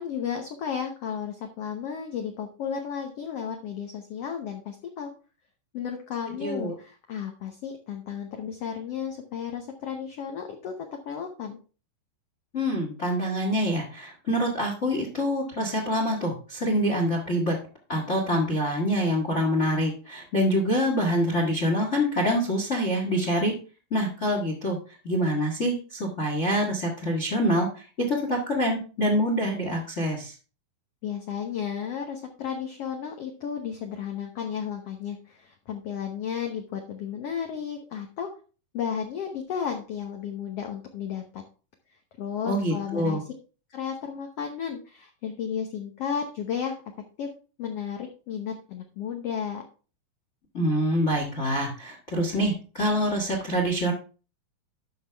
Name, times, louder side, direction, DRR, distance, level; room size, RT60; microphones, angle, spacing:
voice 1, 0.0-5.1 5.7-11.6 31.0-38.3 38.7-41.4 42.2-43.2 43.7-46.8 47.2-47.3 47.6-49.6, left 7 dB, 70° left, 3 dB, 1.5 m, -33 dB
voice 2, 6.4-6.7 12.5-17.5 17.9-23.5 23.9-30.3 42.4-43.2 50.5-53.9, equal, 35° left, 0 dB, 1.1 m, -26 dB
11.5 x 5.8 x 3.4 m, 0.36 s
omnidirectional pair, 4.1 m